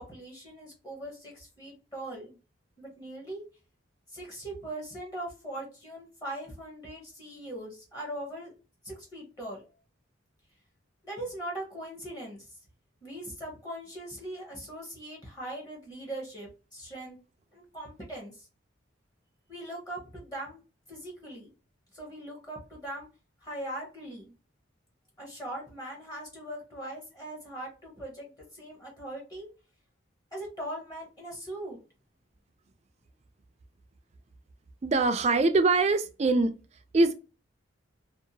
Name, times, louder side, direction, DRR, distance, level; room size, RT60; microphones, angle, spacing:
voice 1, 0.0-2.4 2.8-3.4 4.1-8.5 8.8-9.6 11.0-12.5 13.0-17.2 17.5-18.5 19.5-20.6 20.9-21.5 21.9-23.1 23.4-24.3 25.2-29.5 30.3-31.8, right 1 dB, 20° left, 0.9 m, -40 dB
voice 2, 34.8-36.5 36.9-37.1, right 3 dB, 35° right, 0.3 m, -23 dB
2.7 x 2.1 x 2.7 m
head